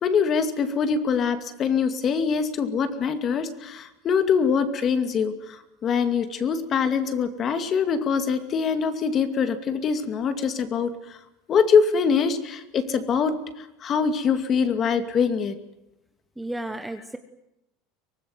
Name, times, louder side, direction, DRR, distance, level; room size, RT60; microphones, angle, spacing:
voice 1, 0.0-11.2 11.5-15.6, left 6 dB, 25° left, 10 dB, 2.4 m, -24 dB
voice 2, 16.4-17.2, right 1 dB, 5° right, 8 dB, 1.1 m, -33 dB
24.5 x 19.0 x 9.5 m, 0.89 s
supercardioid pair, 165°, 0 cm